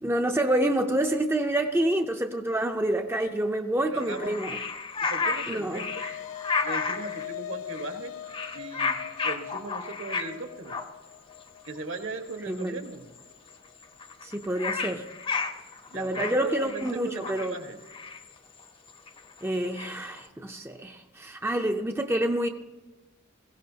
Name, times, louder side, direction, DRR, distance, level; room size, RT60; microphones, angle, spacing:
voice 1, 0.0-4.6 5.5-5.8 12.5-12.8 14.2-15.0 15.9-17.6 19.4-22.5, right 1 dB, 10° right, 4 dB, 0.5 m, -27 dB
voice 2, 3.8-4.3 5.0-5.8 6.6-8.1 8.5-9.0 9.2-10.8 11.6-13.1 15.9-17.8, right 3 dB, 65° right, 5 dB, 1.5 m, -38 dB
sound 1, 4.0-7.3 7.7-8.0 8.2-10.4 10.7-10.9 11.5-11.6 11.8-12.0 12.3-12.6 12.9-13.0 13.2-13.3 13.5-20.2, left 4 dB, 25° left, 0.7 m, -32 dB
sound 2, 5.2-13.7, left 11 dB, 85° left, 0.5 m, -42 dB
21.5 x 16.0 x 2.8 m, 1.2 s
head